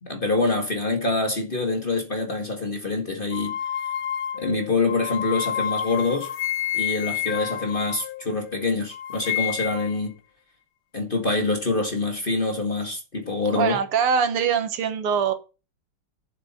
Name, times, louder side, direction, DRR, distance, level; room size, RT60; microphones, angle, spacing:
voice 1, 0.0-3.6 4.4-6.3 6.7-10.1 10.9-13.8, left 3 dB, 25° left, 1.8 m, -25 dB
sound 1, 3.3-8.6 8.9-10.0, left 10 dB, 85° left, 0.8 m, -29 dB
voice 2, 13.5-15.3, right 7 dB, 80° right, 2.1 m, -23 dB
11.5 x 7.4 x 4.3 m
omnidirectional pair, 2.4 m